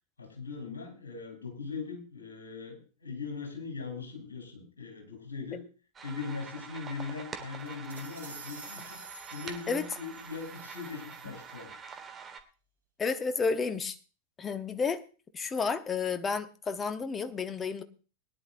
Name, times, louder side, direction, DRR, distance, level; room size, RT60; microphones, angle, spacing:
voice 1, 0.2-5.6 6.0-9.0 9.3-11.7, left 4 dB, 70° left, 1 dB, 4.5 m, -40 dB
sound 1, 6.0-12.4, right 6 dB, 20° right, 1.6 m, -46 dB
glass bottle dropped (slowed down), 7.6-11.6, right 4 dB, 65° right, 3.5 m, -50 dB
voice 2, 13.0-14.0 14.4-15.0 15.3-17.8, left 5 dB, 20° left, 10 dB, 1.1 m, -31 dB
21.0 x 10.5 x 2.7 m, 0.35 s
figure-of-eight pair, 90°, 0 cm